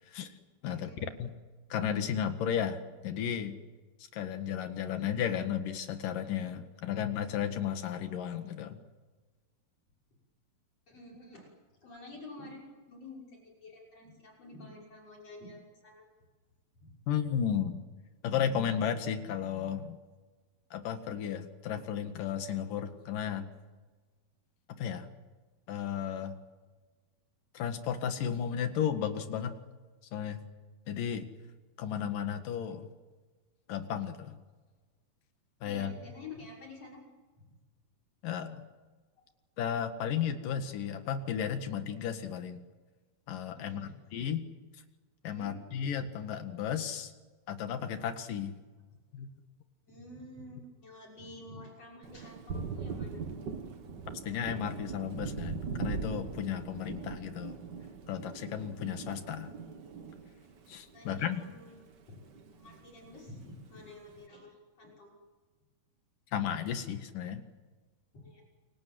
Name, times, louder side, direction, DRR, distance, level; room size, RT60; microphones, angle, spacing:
voice 1, 0.6-1.0 10.9-11.5 11.8-16.0 16.8-16.9 35.6-37.0 37.4-37.5 43.5-43.9 45.3-45.6 49.9-53.6 60.9-61.8 62.2-62.3 62.5-65.1 68.1-68.4, left 2 dB, 40° left, 0 dB, 7.0 m, -49 dB
voice 2, 1.7-3.6 4.1-8.8 17.1-17.8 18.2-20.0 20.7-23.5 24.8-25.1 25.7-26.4 27.5-29.6 30.1-30.4 30.9-31.2 31.8-32.9 33.7-34.4 35.6-36.0 38.2-38.7 39.6-42.6 43.3-44.5 45.2-47.1 47.5-48.6 49.1-49.3 54.2-57.6 58.1-59.6 60.7-61.4 66.3-67.4, left 8 dB, 65° left, 8 dB, 3.3 m, -34 dB
Thunder, 52.0-61.8 62.1-63.2, right 5 dB, 50° right, 1.2 m, -41 dB
29.0 x 24.0 x 7.9 m, 1.3 s
omnidirectional pair, 4.3 m